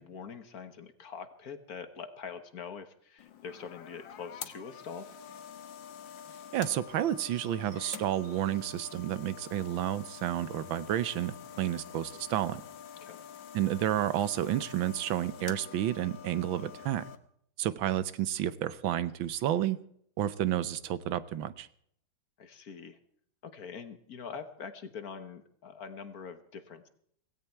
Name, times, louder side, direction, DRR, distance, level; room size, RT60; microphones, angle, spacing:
voice 1, 0.0-5.1 11.5-11.7 13.0-13.2 22.4-23.0 23.4-26.9, left 6 dB, 55° left, 11 dB, 1.6 m, -44 dB
sound 1, 3.2-17.2, left 8 dB, 75° left, 1.9 m, -47 dB
voice 2, 6.5-12.6 13.5-17.1 17.6-19.8 20.2-21.7, right 12 dB, 85° right, 16 dB, 1.6 m, -31 dB
17.0 x 16.5 x 4.5 m, 0.66 s
omnidirectional pair, 2.1 m